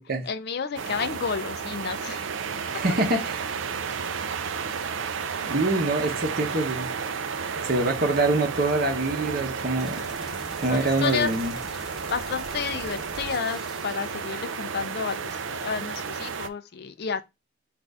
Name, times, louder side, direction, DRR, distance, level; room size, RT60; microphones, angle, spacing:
voice 1, 0.2-2.3 10.7-11.3 11.9-17.2, left 6 dB, 50° left, 0.4 m, -31 dB
sound 1, 0.8-16.5, right 6 dB, 65° right, 0.4 m, -32 dB
voice 2, 2.7-3.5 5.5-6.9 7.6-10.0 10.6-11.5, right 2 dB, 45° right, 0.8 m, -25 dB
sound 2, 9.8-14.2, equal, 5° right, 1.1 m, -44 dB
5.2 x 2.5 x 3.4 m
head